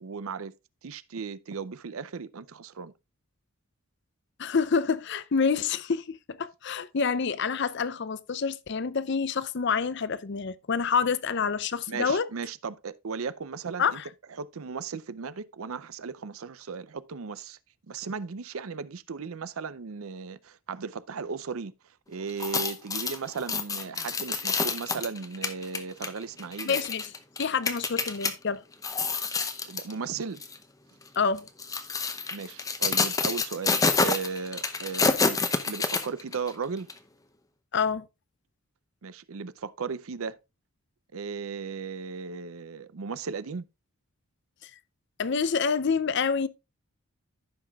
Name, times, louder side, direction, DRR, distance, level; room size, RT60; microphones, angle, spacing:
voice 1, 0.0-0.5 0.8-2.9 11.9-14.0 14.4-17.6 17.9-21.7 22.1-26.8 29.6-30.4 32.3-35.4 35.7-36.9 39.0-40.4 41.1-43.6, right 5 dB, 75° right, 0.6 m, -36 dB
voice 2, 4.4-12.3 13.8-14.1 26.6-27.1 27.4-28.6 31.2-31.5 37.7-38.0 44.6-44.7 45.2-46.5, left 5 dB, 50° left, 0.5 m, -27 dB
sound 1, 22.3-28.3 28.7-29.9 30.4-30.6 31.4-36.5 36.9-37.0, left 4 dB, 15° left, 0.7 m, -28 dB
15.0 x 5.8 x 2.4 m
head